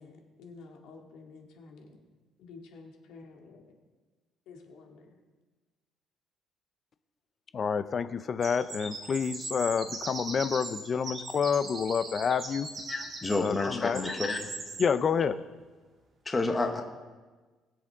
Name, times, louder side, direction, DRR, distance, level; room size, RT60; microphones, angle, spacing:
voice 1, 0.0-2.0 2.4-3.7 4.5-5.2, left 4 dB, 80° left, 1 dB, 2.0 m, -50 dB
voice 2, 7.5-12.7 13.4-14.0 14.8-15.4, left 6 dB, 35° left, 13 dB, 0.5 m, -28 dB
sound 1, 8.4-14.9, right 3 dB, 35° right, 1.9 m, -40 dB
voice 3, 12.9-14.5 16.2-16.8, left 3 dB, 20° left, 4 dB, 1.0 m, -30 dB
20.0 x 7.8 x 3.6 m, 1.3 s
cardioid pair, 145°, 0 cm